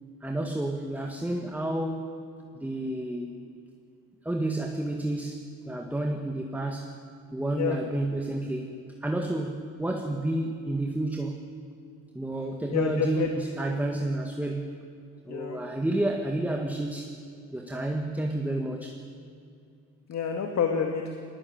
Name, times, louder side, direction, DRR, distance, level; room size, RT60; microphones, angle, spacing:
voice 1, 0.2-2.1 2.5-3.4 4.2-7.0 7.3-8.7 9.0-11.4 12.1-14.7 15.2-17.2 17.5-19.0, right 1 dB, 5° right, 2 dB, 1.9 m, -30 dB
voice 2, 12.7-13.3 15.3-15.6 20.1-21.1, left 7 dB, 60° left, 4 dB, 2.3 m, -28 dB
21.0 x 19.5 x 9.2 m, 2.5 s
cardioid pair, 90°, 30 cm